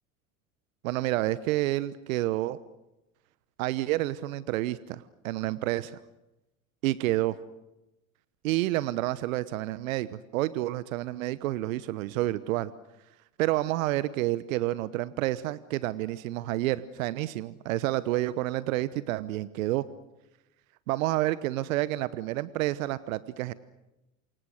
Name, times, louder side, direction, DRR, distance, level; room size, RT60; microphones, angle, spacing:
voice 1, 0.8-2.6 3.6-6.0 6.8-7.4 8.4-12.7 13.4-19.8 20.9-23.5, right 16 dB, 70° right, 17 dB, 1.1 m, -29 dB
29.0 x 26.0 x 6.5 m, 0.93 s
hypercardioid pair, 80°, 42 cm